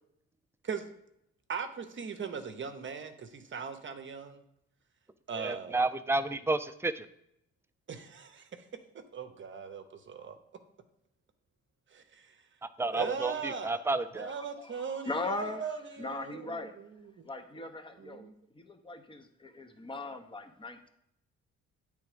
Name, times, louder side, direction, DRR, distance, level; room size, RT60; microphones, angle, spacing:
voice 1, 1.5-4.4 5.3-5.9 7.9-8.7 9.1-10.4 11.9-12.4 12.9-16.7 17.2-17.3 18.0-18.3, right 6 dB, 40° right, 8 dB, 0.8 m, -39 dB
voice 2, 5.4-7.1 12.8-14.3, right 2 dB, 10° right, 11 dB, 0.4 m, -31 dB
voice 3, 14.3-15.7 16.0-16.8 17.2-18.3 18.5-20.9, left 2 dB, 15° left, 7 dB, 0.8 m, -39 dB
8.6 x 3.5 x 5.0 m, 0.78 s
cardioid pair, 90°, 30 cm